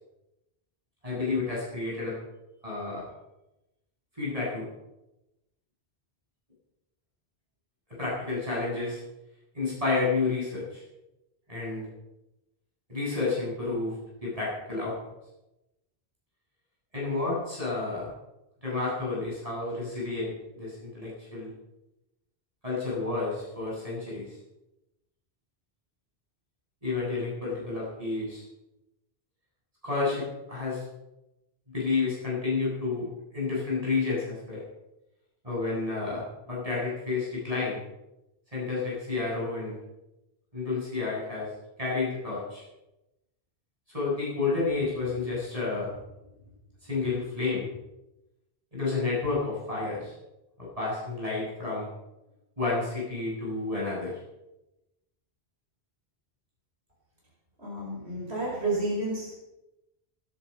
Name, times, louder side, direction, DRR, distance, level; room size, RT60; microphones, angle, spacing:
voice 1, 1.0-2.2 2.6-3.1 4.2-4.7 8.0-9.0 9.5-10.8 11.5-11.9 12.9-14.9 16.9-18.1 18.6-21.5 22.6-24.3 26.8-28.4 29.8-30.8 31.7-34.6 35.4-37.8 38.5-39.8 40.5-41.5 41.8-42.6 43.9-45.9 46.8-47.7 48.7-50.1 50.6-51.9 52.6-54.2, left 3 dB, 35° right, -6 dB, 8.2 m, -30 dB
voice 2, 57.6-59.3, right 2 dB, 90° right, -4 dB, 5.4 m, -30 dB
19.0 x 11.5 x 5.5 m, 0.94 s
omnidirectional pair, 1.1 m